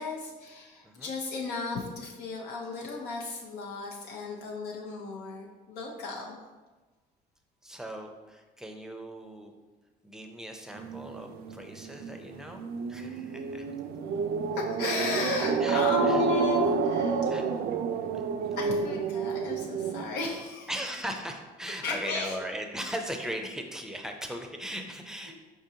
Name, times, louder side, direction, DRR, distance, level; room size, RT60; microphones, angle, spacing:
voice 1, 0.0-6.4 14.1-14.2 14.5-17.2 18.6-20.7 21.8-22.4 25.3-25.4, left 4 dB, 85° left, -2 dB, 0.7 m, -34 dB
voice 2, 7.6-9.5 10.0-12.6 12.9-13.7 15.6-16.2 17.3-17.5 18.1-18.2 20.7-25.5, equal, 5° right, 4 dB, 0.5 m, -38 dB
sound 1, 10.8-20.0, right 6 dB, 70° right, 0.4 m, -30 dB
4.9 x 3.7 x 2.8 m, 1.2 s
cardioid pair, 110°, 17 cm